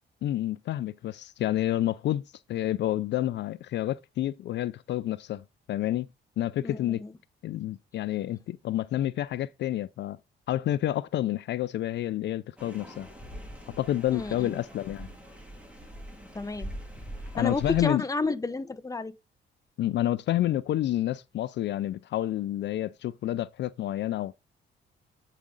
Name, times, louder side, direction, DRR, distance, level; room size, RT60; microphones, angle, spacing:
voice 1, 0.2-6.1 6.4-7.0 7.4-10.2 10.5-13.1 13.8-15.1 17.3-18.0 19.8-24.3, left 13 dB, 65° left, 0.4 m, -29 dB
voice 2, 6.6-7.1 14.1-14.6 16.3-16.7 17.4-19.1, left 3 dB, 15° left, 0.9 m, -31 dB
sound 1, 12.6-17.8, equal, 5° right, 3.2 m, -42 dB
8.4 x 5.0 x 3.9 m
cardioid pair, 90°, 20 cm